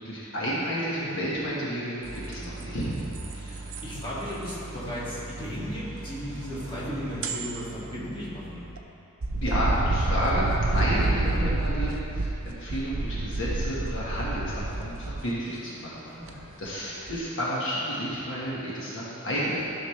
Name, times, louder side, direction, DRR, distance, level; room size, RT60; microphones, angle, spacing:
voice 1, 0.0-3.0 9.4-10.4 10.7-19.6, equal, 60° left, -7 dB, 1.4 m, -31 dB
sound 1, 2.0-8.8 9.2-15.3 16.3-16.7 17.1-17.2, right 2 dB, 65° right, 0.6 m, -31 dB
voice 2, 3.4-8.7 16.1-16.5, equal, 25° left, -9 dB, 2.1 m, -36 dB
13.5 x 6.3 x 3.2 m, 3.0 s
head